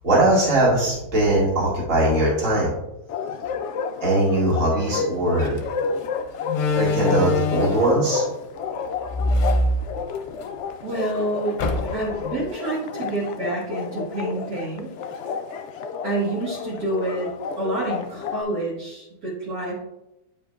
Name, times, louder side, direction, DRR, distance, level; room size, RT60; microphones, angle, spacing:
voice 1, 0.0-2.8 4.0-5.6 6.7-8.2, right 1 dB, 50° right, -5 dB, 2.3 m, -20 dB
Bark, 3.1-18.4, left 5 dB, 85° left, 0.6 m, -31 dB
Slam, 5.4-5.6 6.5-8.0 9.1-10.5 10.8-10.9 11.6-12.2, left 2 dB, 60° left, 1.0 m, -23 dB
voice 2, 10.8-11.6 11.9-14.9 16.0-17.3 17.6-19.7, right 2 dB, 70° right, -7 dB, 2.1 m, -28 dB
9.2 x 5.0 x 2.3 m, 0.89 s
omnidirectional pair, 1.8 m